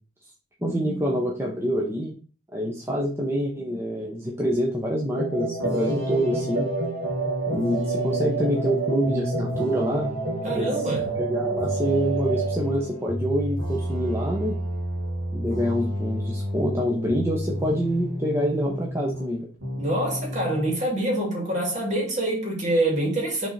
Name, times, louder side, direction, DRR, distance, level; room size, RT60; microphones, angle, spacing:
voice 1, 0.6-2.2 2.5-6.7 7.5-10.1 10.5-10.7 11.2-14.6 15.3-19.5, equal, 15° right, 0.9 m, -26 dB
sound 1, 5.2-12.6, right 4 dB, 70° right, 1.7 m, -29 dB
sound 2, 5.6-19.3 19.6-20.8, left 1 dB, 90° right, 2.1 m, -31 dB
voice 2, 10.4-11.2 19.7-23.5, right 1 dB, 40° right, 2.4 m, -26 dB
6.1 x 3.6 x 4.2 m
head